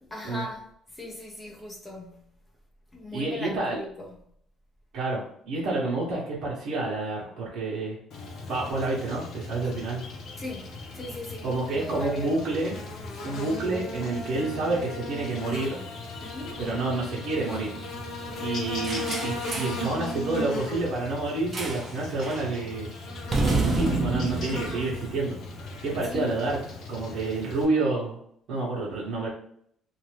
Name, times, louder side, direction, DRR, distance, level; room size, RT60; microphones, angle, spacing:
voice 1, 0.1-2.3 2.9-4.1 10.4-12.4 16.2-16.6 18.3-18.7 25.9-26.3, left 2 dB, 15° left, 0.6 m, -38 dB
voice 2, 3.1-3.8 4.9-8.0 8.5-10.0 11.4-12.8 13.2-15.8 16.6-17.8 18.4-22.9 23.6-25.4 25.8-26.6 26.9-28.2 28.5-29.3, right 2 dB, 75° right, 1.1 m, -29 dB
Buzz, 8.1-27.6, left 1 dB, 60° left, 0.8 m, -37 dB
sound 1, 18.8-19.9 21.5-21.9 22.2-22.5 23.3-25.6, right 3 dB, 30° right, 0.6 m, -28 dB
2.7 x 2.5 x 3.3 m
cardioid pair, 140°, 0 cm